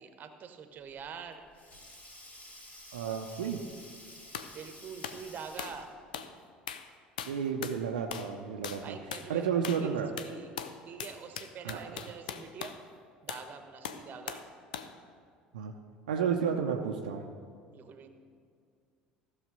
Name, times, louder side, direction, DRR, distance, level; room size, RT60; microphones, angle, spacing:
voice 1, 0.0-1.4 4.5-5.9 8.8-10.5 10.9-12.8 13.2-14.4 17.7-18.1, right 6 dB, 40° right, 8 dB, 1.1 m, -45 dB
Sink (filling or washing), 0.9-6.1, left 1 dB, 35° left, 2.9 m, -52 dB
voice 2, 2.9-3.6 7.3-9.0 9.3-10.1 11.6-11.8 15.5-15.7 16.1-17.2, right 7 dB, 75° right, 2 dB, 0.6 m, -31 dB
sound 1, 4.3-4.5 5.0-5.2 5.6-5.8 6.1-6.3 6.7-6.9 7.2-7.8 8.1-8.3 8.6-8.8 9.1-9.3 9.6-9.9 10.2-12.8 13.3-13.5 13.8-14.5 14.7-14.9, left 8 dB, 75° left, 0.6 m, -40 dB
14.5 x 6.4 x 5.3 m, 2.2 s
figure-of-eight pair, 65°, 5 cm